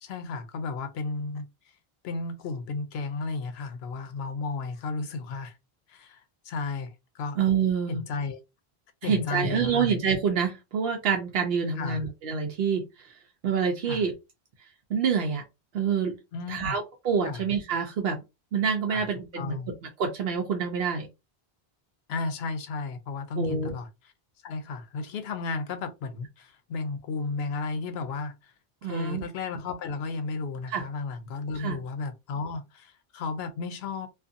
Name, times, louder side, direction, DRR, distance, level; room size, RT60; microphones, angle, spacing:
voice 1, 0.0-1.4 2.0-5.5 5.9-7.4 7.9-8.4 9.0-9.9 11.8-12.0 13.9-14.0 16.3-16.7 17.2-17.4 18.9-19.0 19.4-19.7 22.1-23.9 24.4-28.5 28.8-34.1, left 4 dB, 85° left, 0.8 m, -33 dB
voice 2, 7.4-8.0 9.0-13.1 13.4-14.1 14.9-15.4 15.7-16.1 16.5-18.2 18.5-21.1 23.4-23.7 28.8-29.2 30.7-30.8 31.5-31.8, right 6 dB, 70° right, 0.8 m, -27 dB
2.4 x 2.4 x 2.6 m
omnidirectional pair, 1.0 m